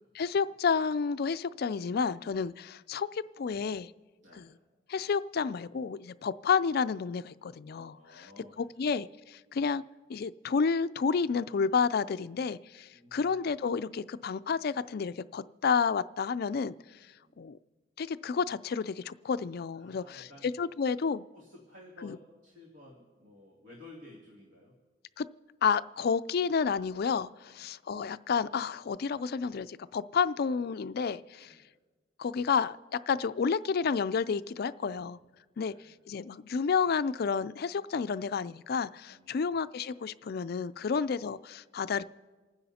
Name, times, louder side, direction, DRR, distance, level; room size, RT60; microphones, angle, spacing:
voice 1, 0.0-3.9 4.4-4.5 4.9-8.3 8.6-9.8 10.1-16.7 17.4-17.6 18.0-21.3 22.0-22.2 25.2-25.3 25.6-31.5 32.2-35.2 35.6-35.7 36.1-42.0, left 5 dB, 50° left, 13 dB, 0.4 m, -30 dB
voice 2, 7.9-8.9 12.9-13.5 17.1-17.4 19.7-20.5 21.3-24.7 27.0-27.7 31.4-31.7 34.8-35.1 35.5-36.0 39.1-39.5 40.7-41.0, left 2 dB, 65° right, -2 dB, 2.5 m, -55 dB
28.5 x 9.7 x 4.2 m, 1.4 s
head